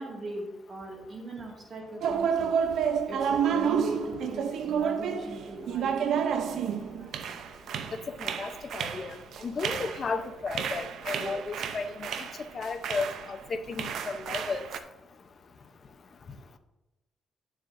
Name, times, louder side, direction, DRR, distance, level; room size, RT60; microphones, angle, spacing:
voice 1, 0.0-2.5 3.1-6.7 11.1-11.4, right 1 dB, 45° right, -2 dB, 2.1 m, -40 dB
sound 1, 2.0-13.4 13.7-14.8, right 7 dB, 75° right, 0.6 m, -30 dB
voice 2, 8.2-9.1 9.4-12.3 12.5-14.7, left 4 dB, 45° left, 7 dB, 0.7 m, -34 dB
11.0 x 7.3 x 2.6 m, 1.0 s
cardioid pair, 90°, 0 cm